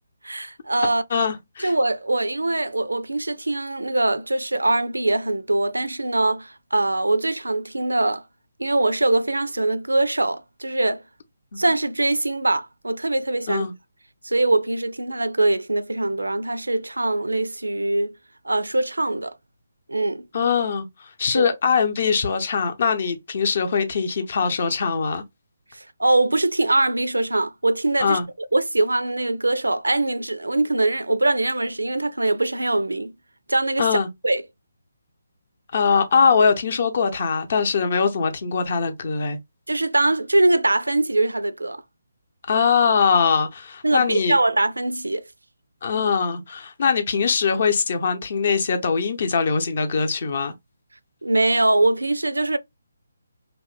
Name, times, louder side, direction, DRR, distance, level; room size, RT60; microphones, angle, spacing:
voice 1, 0.2-1.0 1.6-8.2 8.6-11.0 11.6-13.7 14.2-18.1 18.4-19.4 19.9-20.3 21.3-21.6 25.7-28.2 28.5-33.1 33.5-34.4 39.7-41.8 43.8-45.2 51.2-52.6, right 2 dB, 80° right, 0.4 m, -22 dB
voice 2, 1.1-1.7 11.5-11.6 13.5-13.7 20.3-25.2 28.0-28.3 33.8-34.1 35.7-39.4 42.5-44.4 45.8-50.5, left 5 dB, 45° left, 0.7 m, -22 dB
3.0 x 2.1 x 3.0 m
figure-of-eight pair, 145°, 0 cm